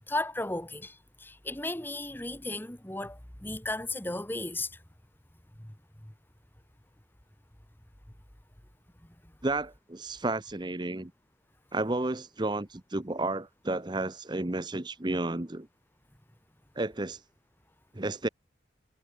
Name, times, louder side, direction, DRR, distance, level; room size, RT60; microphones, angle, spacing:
voice 1, 0.0-4.8 5.6-5.7 6.0-6.1, left 2 dB, 10° left, 1.7 m, -35 dB
voice 2, 9.4-11.1 11.7-15.7 16.8-17.2 17.9-18.3, right 2 dB, 25° right, 0.9 m, -32 dB
head